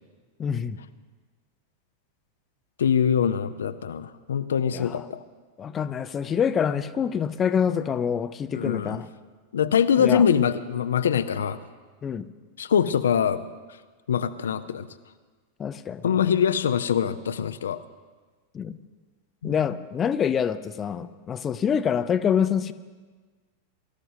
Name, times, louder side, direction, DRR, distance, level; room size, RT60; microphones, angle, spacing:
voice 1, 0.4-0.8 4.7-5.0 5.6-9.0 10.0-10.2 12.0-12.3 15.6-16.2 18.5-18.8 19.4-22.7, left 7 dB, 25° left, 12 dB, 0.6 m, -26 dB
voice 2, 2.8-5.2 8.5-9.0 9.5-11.6 12.6-13.5 14.1-14.9 16.0-17.8 19.4-19.5, left 8 dB, 65° left, 11 dB, 0.6 m, -23 dB
23.0 x 13.5 x 2.8 m, 1.4 s
figure-of-eight pair, 90°, 0 cm